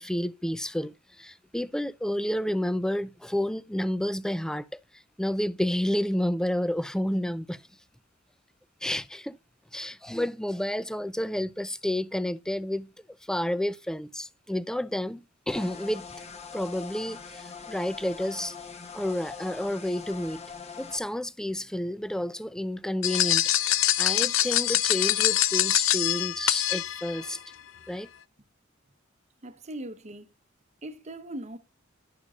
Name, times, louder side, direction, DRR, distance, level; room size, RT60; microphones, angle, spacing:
voice 1, 0.0-4.7 5.2-7.6 8.8-9.4 9.7-12.9 13.3-16.0 16.5-18.6 18.9-20.4 20.8-27.4 27.9-28.1, left 1 dB, 5° left, 0.4 m, -30 dB
sound 1, 15.5-21.0, left 5 dB, 35° left, 1.3 m, -42 dB
sound 2, 23.0-27.3, left 13 dB, 75° left, 0.7 m, -24 dB
voice 2, 29.4-30.3 30.8-31.6, right 1 dB, 35° right, 0.9 m, -39 dB
11.5 x 11.0 x 2.4 m
head